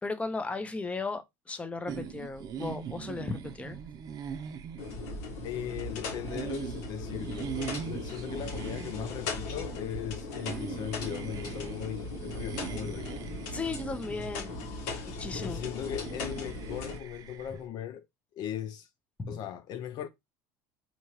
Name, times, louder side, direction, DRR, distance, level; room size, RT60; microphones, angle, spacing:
voice 1, 0.0-3.8 13.5-14.7 15.2-15.6 19.2-19.4, left 3 dB, 15° left, 0.7 m, -36 dB
sound 1, 1.9-17.6, right 8 dB, 45° right, 0.6 m, -42 dB
sound 2, 4.8-17.0, left 3 dB, 90° left, 1.4 m, -38 dB
voice 2, 5.4-13.2 15.4-18.1 18.3-18.9 19.3-20.1, left 10 dB, 50° left, 0.4 m, -38 dB
4.3 x 2.9 x 3.0 m
cardioid pair, 130°, 9 cm